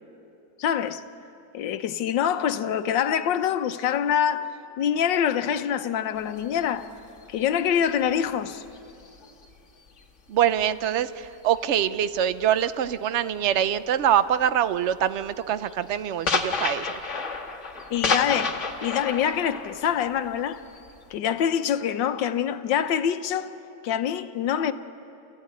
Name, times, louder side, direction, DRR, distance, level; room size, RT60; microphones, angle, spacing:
voice 1, 0.6-1.0 1.5-6.9 7.3-8.6 17.9-20.6 21.1-23.5 23.8-24.7, left 9 dB, 80° left, 1.5 m, -25 dB
sound 1, 6.2-10.0 10.4-13.8 14.0-14.4 14.8-21.2, left 4 dB, 45° left, 1.7 m, -32 dB
voice 2, 10.3-16.9, right 10 dB, 70° right, 0.6 m, -24 dB
29.0 x 15.0 x 9.6 m
omnidirectional pair, 2.0 m